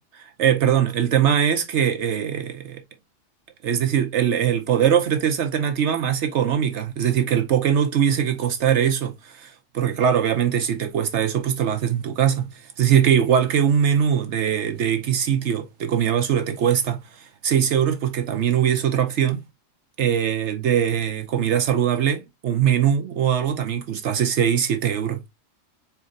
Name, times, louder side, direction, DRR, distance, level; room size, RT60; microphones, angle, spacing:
voice 1, 0.4-2.8 3.6-12.5 12.8-17.0 17.4-19.4 20.0-25.2, right 9 dB, 65° right, 0.9 m, -21 dB
4.5 x 2.7 x 3.6 m
omnidirectional pair, 1.3 m